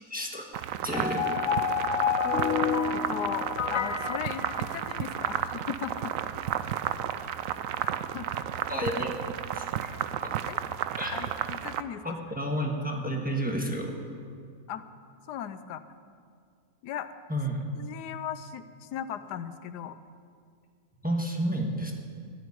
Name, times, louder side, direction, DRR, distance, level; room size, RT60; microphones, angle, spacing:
voice 1, 0.1-0.5 0.8-1.2 8.3-9.1 9.4-9.6 10.2-10.4 11.0-11.2 12.0-14.0 17.3-17.7 21.0-21.9, equal, 5° right, 1 dB, 1.3 m, -31 dB
sound 1, 0.5-11.8, right 10 dB, 70° right, 0.8 m, -32 dB
sound 2, 0.9-5.2, left 7 dB, 60° left, 1.1 m, -29 dB
voice 2, 2.9-6.1 7.8-8.3 10.5-10.6 11.1-12.0 14.7-14.8 15.3-15.8 16.8-17.1 17.8-20.0, left 9 dB, 85° left, 12 dB, 1.2 m, -37 dB
13.5 x 7.7 x 9.8 m, 2.2 s
omnidirectional pair, 1.7 m